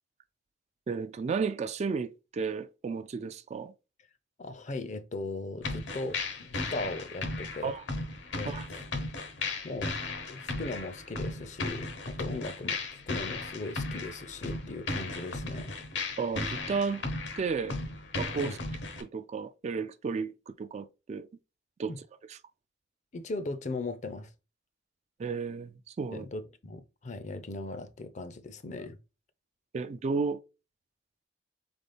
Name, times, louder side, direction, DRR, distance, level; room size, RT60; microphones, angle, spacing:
voice 1, 0.9-3.7 7.6-7.8 8.4-8.7 16.2-17.0 17.4-17.8 18.2-18.6 19.0-21.3 21.8-21.9 22.3-22.4 25.2-26.3 29.7-30.4, right 5 dB, 35° right, 0.3 m, -33 dB
voice 2, 4.4-7.8 8.3-8.8 9.6-10.0 10.3-15.8 18.4-18.6 21.9-22.0 23.1-24.3 26.1-29.0, left 2 dB, 40° left, 0.5 m, -38 dB
sound 1, 5.6-19.0, left 3 dB, 70° left, 0.9 m, -36 dB
4.0 x 3.6 x 3.4 m
head